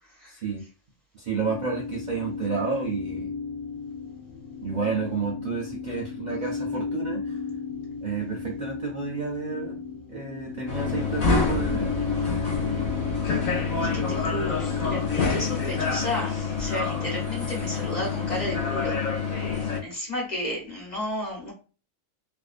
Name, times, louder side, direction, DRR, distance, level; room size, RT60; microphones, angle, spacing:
voice 1, 0.3-0.6 1.2-3.3 4.6-7.4 8.0-9.8 10.1-11.9, right 5 dB, 55° right, -2 dB, 0.5 m, -30 dB
sound 1, 1.4-16.1, left 5 dB, 80° left, 1.0 m, -35 dB
sound 2, 10.7-19.8, left 5 dB, 60° left, 0.5 m, -27 dB
voice 2, 13.8-19.1 19.3-19.4 19.8-21.5, left 1 dB, 35° left, -2 dB, 1.0 m, -33 dB
2.6 x 2.2 x 2.4 m, 0.34 s
omnidirectional pair, 1.3 m